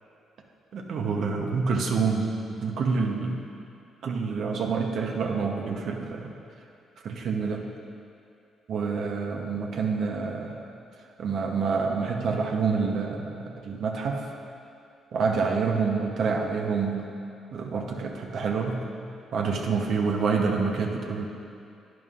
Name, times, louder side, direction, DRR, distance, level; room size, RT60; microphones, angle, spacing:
voice 1, 0.7-3.5 4.0-6.3 7.0-7.7 8.7-10.7 11.2-14.3 15.1-17.1 17.5-18.8 19.3-21.3, right 5 dB, 65° right, 2 dB, 0.9 m, -27 dB
10.5 x 9.3 x 2.5 m, 2.5 s
cardioid pair, 90°, 0 cm